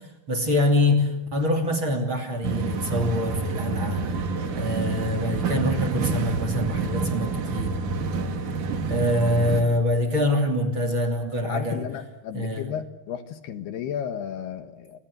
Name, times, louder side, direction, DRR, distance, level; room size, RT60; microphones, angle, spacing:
voice 1, 0.3-4.0 4.5-7.8 8.9-11.8 12.3-12.7, left 1 dB, 35° right, 4 dB, 3.2 m, -25 dB
sound 1, 2.4-9.6, right 4 dB, 50° right, 3.4 m, -28 dB
voice 2, 11.5-15.0, left 9 dB, 75° left, 10 dB, 3.5 m, -33 dB
29.5 x 25.0 x 8.1 m, 0.88 s
omnidirectional pair, 4.8 m